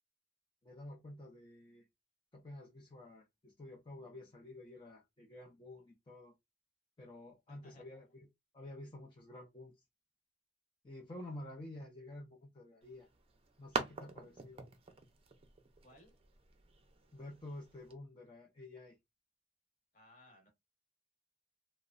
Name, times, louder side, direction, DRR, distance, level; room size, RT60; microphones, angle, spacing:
voice 1, 0.6-1.8 2.3-6.3 7.0-8.3 8.5-9.7 10.8-13.1 13.6-14.6 17.1-19.0, left 1 dB, 25° left, 0.5 m, -50 dB
sound 1, 12.8-17.9, right 4 dB, 35° right, 0.5 m, -45 dB
voice 2, 15.8-16.1 19.9-20.5, left 1 dB, 45° left, 1.1 m, -61 dB
2.9 x 2.0 x 2.4 m
head